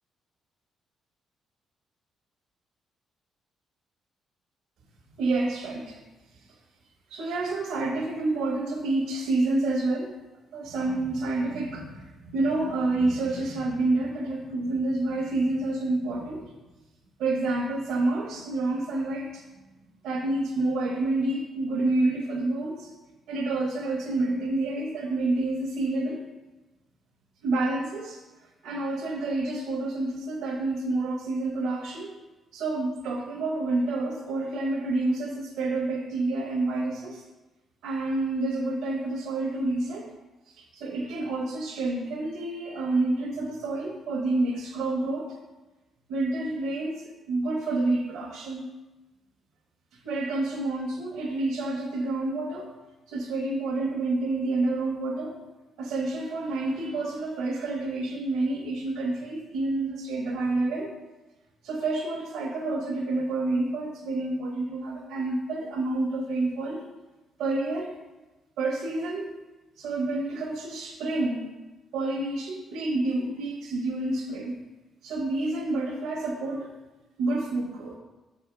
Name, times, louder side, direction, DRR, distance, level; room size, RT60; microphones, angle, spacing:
voice 1, 5.2-6.0 7.1-10.1 10.5-16.4 17.2-19.4 20.0-22.9 23.3-26.2 27.4-28.2 28.6-32.1 32.5-37.2 37.8-40.1 40.5-45.3 46.1-48.7 49.9-52.7 53.1-55.4 55.8-60.9 61.6-66.8 67.4-68.0 68.6-69.4 69.8-71.5 71.9-74.6 75.0-76.7 77.2-78.0, right 2 dB, 85° right, -2 dB, 0.9 m, -28 dB
6.6 x 4.2 x 5.0 m, 1.1 s
cardioid pair, 90°, 0 cm